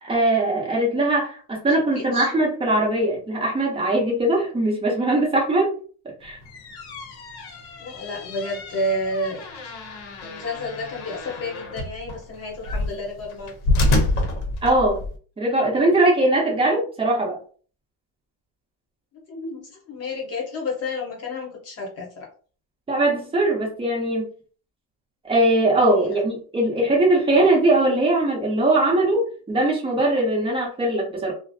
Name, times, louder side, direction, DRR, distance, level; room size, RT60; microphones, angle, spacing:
voice 1, 0.0-5.7 6.2-6.4 14.6-15.0 15.4-17.4 22.9-24.3 25.2-31.3, right 2 dB, 15° right, -3 dB, 0.6 m, -21 dB
voice 2, 1.9-2.3 7.8-9.4 10.2-13.5 19.3-22.3 25.9-26.2, left 1 dB, 35° left, -1 dB, 0.9 m, -30 dB
sound 1, 6.3-15.2, left 2 dB, 60° left, 0.7 m, -28 dB
2.4 x 2.0 x 2.6 m, 0.41 s
cardioid pair, 165°, 44 cm